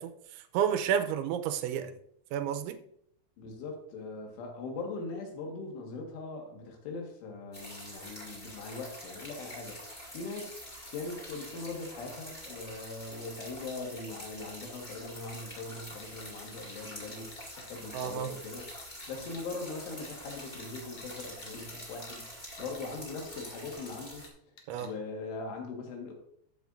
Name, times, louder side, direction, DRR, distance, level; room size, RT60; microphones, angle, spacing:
voice 1, 0.0-1.9 2.3-2.8 17.9-18.3 24.7-24.9, right 9 dB, 90° right, 9 dB, 3.0 m, -31 dB
voice 2, 3.4-9.9 10.1-10.6 10.9-18.7 19.1-22.3 22.6-24.3 24.8-26.1, left 3 dB, 90° left, 1 dB, 4.2 m, -41 dB
sound 1, 7.5-24.3, left 1 dB, 40° left, 0.6 m, -46 dB
sound 2, 14.6-14.7 15.6-15.7 16.0-16.6 17.1-17.7 18.0-18.3 18.7-19.1 19.3-19.4 20.0-21.1 21.4-21.5 22.1-22.2 22.6-22.8 24.2-24.3 24.6-24.9, left 5 dB, 60° left, 2.1 m, -53 dB
12.5 x 7.9 x 2.6 m, 0.69 s
omnidirectional pair, 5.4 m